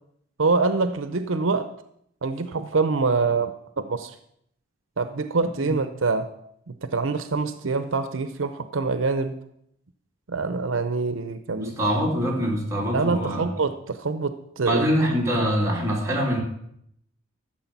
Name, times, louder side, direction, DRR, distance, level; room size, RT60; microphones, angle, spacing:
voice 1, 0.4-1.7 2.2-4.2 5.0-6.3 6.7-9.4 10.3-11.7 12.9-14.8, right 4 dB, 70° right, 10 dB, 0.7 m, -25 dB
voice 2, 11.5-13.5 14.6-16.4, equal, 15° right, -3 dB, 2.6 m, -24 dB
13.0 x 7.4 x 5.9 m, 0.73 s
head